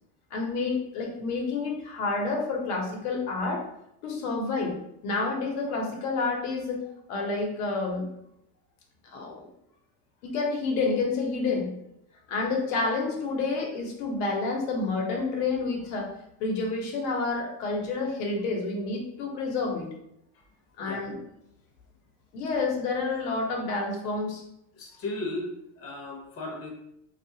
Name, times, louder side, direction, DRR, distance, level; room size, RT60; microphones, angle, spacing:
voice 1, 0.3-3.6 4.0-4.8 5.0-8.1 9.1-9.4 10.2-11.7 12.3-16.1 16.4-19.9 20.8-21.2 22.3-24.4, left 3 dB, 80° left, 0 dB, 0.9 m, -29 dB
voice 2, 24.7-26.7, left 2 dB, 30° left, 0 dB, 0.7 m, -36 dB
2.7 x 2.4 x 2.7 m, 0.79 s
cardioid pair, 145°, 45 cm